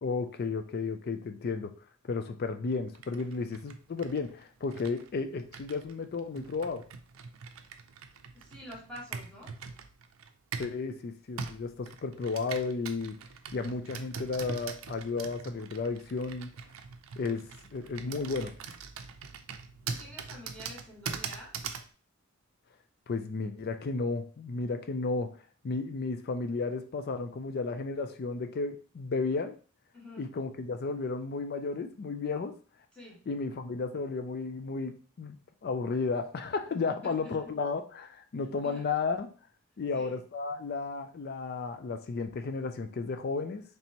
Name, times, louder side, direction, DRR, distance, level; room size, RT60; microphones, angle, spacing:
voice 1, 0.0-1.7 2.1-6.8 10.6-13.1 13.5-16.5 17.2-17.4 17.7-18.5 23.1-25.3 25.6-29.6 30.2-32.5 33.3-35.4 35.6-39.3 39.8-43.6, left 4 dB, 50° left, 8 dB, 0.4 m, -33 dB
Computer keyboard, 2.9-10.8 11.4-21.9, right 5 dB, 80° right, 0.5 m, -42 dB
voice 2, 8.3-9.5 19.8-21.5 29.9-30.3 32.9-33.2 37.0-37.6 38.6-38.8 39.9-40.2, equal, 5° left, -5 dB, 1.5 m, -47 dB
4.2 x 3.3 x 2.9 m, 0.39 s
head